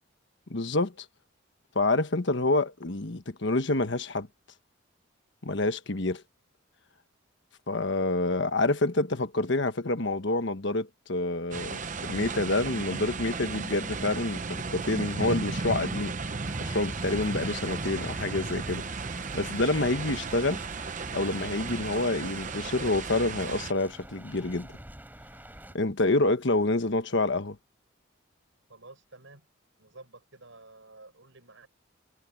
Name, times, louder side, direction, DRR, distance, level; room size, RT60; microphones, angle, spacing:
voice 1, 0.5-0.9 1.7-4.3 5.4-6.2 7.7-16.1 16.6-19.0 19.3-20.6 21.1-24.7 25.7-27.6, left 2 dB, 60° left, 1.3 m, -27 dB
sound 1, 11.5-23.7, right 4 dB, 40° right, 0.8 m, -35 dB
sound 2, 16.4-25.7, right 1 dB, 10° right, 5.8 m, -46 dB
voice 2, 28.7-29.5 29.8-31.7, right 2 dB, 70° right, 7.4 m, -51 dB
head